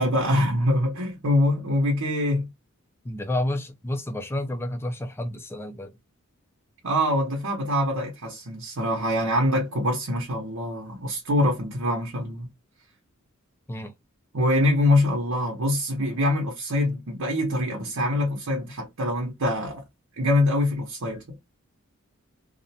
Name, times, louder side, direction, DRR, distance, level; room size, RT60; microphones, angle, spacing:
voice 1, 0.0-2.5 6.8-12.5 14.3-19.8 20.2-21.2, left 1 dB, 75° right, 0.8 m, -24 dB
voice 2, 3.0-5.9 13.7-13.9, left 1 dB, 10° left, 0.4 m, -30 dB
2.4 x 2.1 x 2.7 m
head